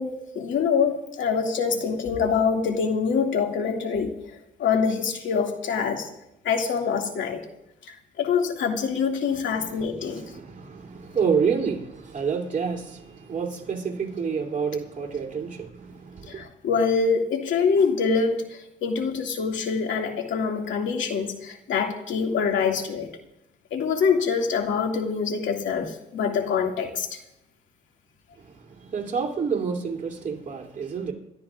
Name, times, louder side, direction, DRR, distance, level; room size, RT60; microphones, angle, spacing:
voice 1, 0.0-4.1 4.6-6.1 6.5-7.4 8.2-10.2 16.3-18.4 18.8-23.1 23.7-27.1, left 5 dB, 75° left, 2.3 m, -25 dB
voice 2, 9.3-16.4 28.4-31.1, right 6 dB, 40° right, 3.1 m, -29 dB
27.0 x 13.0 x 2.5 m
cardioid pair, 90°, 20 cm